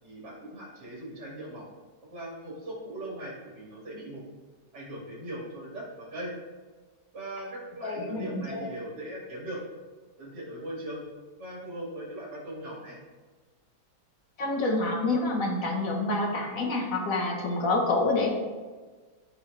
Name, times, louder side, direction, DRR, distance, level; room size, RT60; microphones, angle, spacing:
voice 1, 0.0-1.7 2.1-4.2 4.7-6.3 7.1-9.6 10.2-11.0 11.4-13.0, right 1 dB, 80° right, -5 dB, 2.9 m, -39 dB
voice 2, 7.8-8.7 14.4-18.3, left 2 dB, 55° left, 0 dB, 1.8 m, -27 dB
13.5 x 4.9 x 3.4 m, 1.4 s
omnidirectional pair, 1.8 m